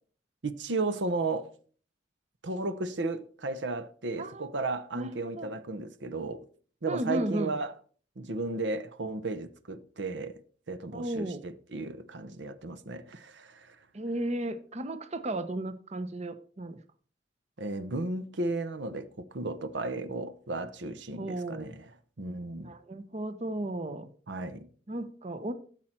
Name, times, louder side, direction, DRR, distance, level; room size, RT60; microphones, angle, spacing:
voice 1, 0.4-1.5 2.4-6.4 6.8-7.7 8.2-10.4 10.7-13.8 17.6-22.7 24.3-24.7, right 3 dB, 75° right, 0.8 m, -34 dB
voice 2, 4.9-5.5 6.9-7.5 10.9-11.4 13.9-16.8 21.2-21.7 22.6-24.1 24.9-25.5, right 1 dB, 35° right, 0.7 m, -34 dB
13.0 x 7.5 x 4.4 m
head